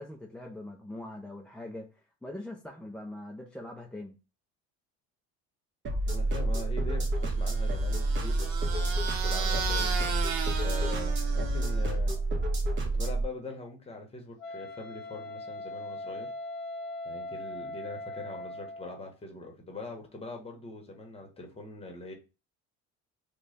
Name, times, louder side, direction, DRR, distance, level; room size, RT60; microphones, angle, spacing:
voice 1, 0.0-4.2, left 1 dB, 5° left, -1 dB, 0.3 m, -42 dB
sound 1, 5.8-13.2, right 2 dB, 35° right, 1.0 m, -29 dB
voice 2, 6.1-10.3 10.6-12.2 12.8-16.3 17.0-22.1, left 2 dB, 20° left, 2 dB, 1.0 m, -42 dB
sound 2, 7.4-12.0, right 6 dB, 70° right, 0.8 m, -35 dB
Wind instrument woodwind instrument, 14.4-19.1, left 2 dB, 65° left, 0.8 m, -40 dB
3.1 x 2.2 x 3.9 m, 0.30 s
cardioid pair, 120°, 32 cm